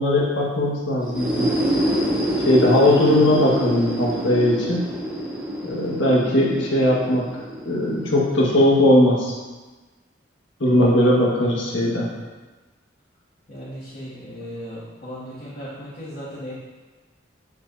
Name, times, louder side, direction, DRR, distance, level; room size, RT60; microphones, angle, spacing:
voice 1, 0.0-1.5 2.5-4.8 5.6-7.3 7.6-9.3 10.6-12.1, left 1 dB, 80° left, -4 dB, 1.6 m, -19 dB
sound 1, 1.0-8.7, equal, 5° right, 1.5 m, -26 dB
voice 2, 13.5-16.5, equal, 50° left, -11 dB, 2.1 m, -37 dB
7.6 x 7.3 x 2.7 m, 1.2 s
head